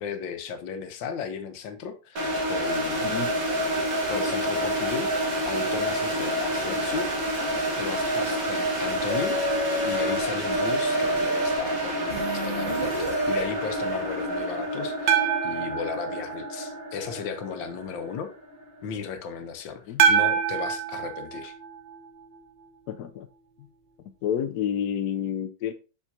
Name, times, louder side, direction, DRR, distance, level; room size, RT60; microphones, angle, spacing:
voice 1, 0.0-3.1 4.1-5.1 5.4-7.1 7.8-9.4 9.8-18.3 18.8-21.5, left 7 dB, 85° left, 1.6 m, -35 dB
sound 1, 2.2-19.0, right 1 dB, 50° right, 1.8 m, -28 dB
voice 2, 3.0-3.3 6.7-6.8 19.9-20.0 22.9-23.3 24.2-25.7, left 9 dB, 70° left, 1.1 m, -29 dB
sound 2, 9.1-10.2 10.5-11.5 12.1-13.4, right 1 dB, 25° right, 2.3 m, -29 dB
sound 3, 15.1-17.3 20.0-22.4, right 8 dB, 80° right, 1.5 m, -26 dB
7.2 x 5.6 x 2.7 m
omnidirectional pair, 2.0 m